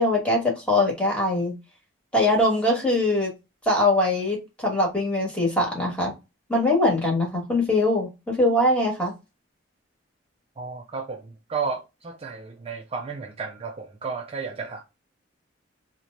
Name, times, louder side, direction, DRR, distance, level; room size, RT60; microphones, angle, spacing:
voice 1, 0.0-1.5 2.1-3.3 3.6-6.1 6.5-9.1, left 1 dB, 5° left, 1.2 m, -22 dB
voice 2, 10.6-14.8, right 5 dB, 30° right, 0.3 m, -33 dB
2.9 x 2.1 x 3.7 m
head